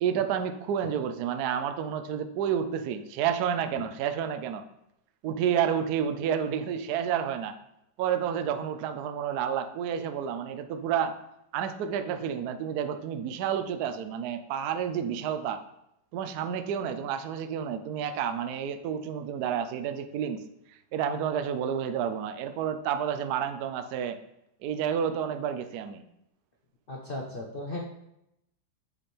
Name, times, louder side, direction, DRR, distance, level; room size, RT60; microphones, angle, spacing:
voice 1, 0.0-4.6 5.2-7.5 8.0-11.1 11.5-15.6 16.1-20.4 20.7-24.2 24.6-26.0, right 8 dB, 70° right, 7 dB, 0.9 m, -30 dB
voice 2, 26.9-27.8, left 1 dB, 90° left, -1 dB, 0.4 m, -36 dB
8.8 x 3.3 x 4.3 m, 0.82 s
omnidirectional pair, 2.2 m